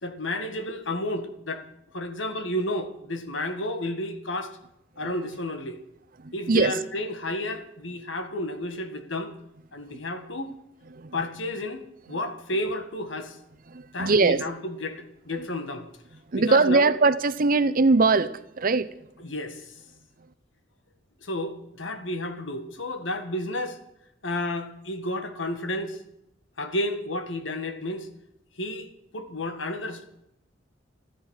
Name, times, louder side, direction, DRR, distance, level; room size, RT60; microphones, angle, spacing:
voice 1, 0.0-1.7 1.9-4.6 5.0-5.8 6.3-9.3 9.7-10.5 11.1-13.4 13.9-15.9 16.4-16.9 19.2-19.8 21.2-23.8 24.2-26.0 26.6-28.1 28.6-30.0, left 1 dB, 80° left, 1.8 m, -31 dB
voice 2, 6.2-6.7 9.9-10.0 10.9-11.1 13.7-14.4 16.3-18.9, right 3 dB, 50° right, 0.7 m, -21 dB
14.0 x 14.0 x 6.5 m
head